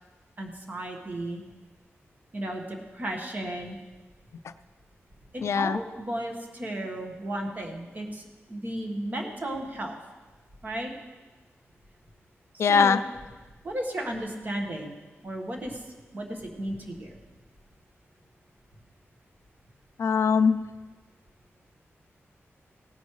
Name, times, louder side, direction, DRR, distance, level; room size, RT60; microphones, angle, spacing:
voice 1, 0.4-1.4 2.3-3.8 5.3-10.0 10.6-10.9 12.5-13.0 13.6-14.9 15.2-15.8 16.1-17.2, right 1 dB, 40° right, 1 dB, 1.5 m, -34 dB
voice 2, 5.4-5.8 12.6-13.0 20.0-20.6, left 6 dB, 75° left, 12 dB, 0.4 m, -21 dB
17.5 x 10.5 x 3.2 m, 1.3 s
wide cardioid pair, 165°, 5 cm